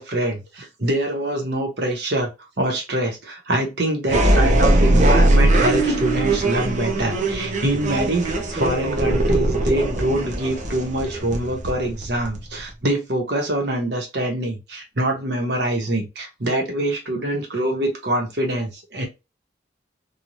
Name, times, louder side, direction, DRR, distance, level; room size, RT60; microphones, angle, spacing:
voice 1, 0.0-2.3 2.6-19.1, right 1 dB, 65° right, 1.0 m, -24 dB
sound 1, 4.1-12.7, right 1 dB, 40° right, 0.6 m, -20 dB
3.1 x 2.3 x 2.6 m
head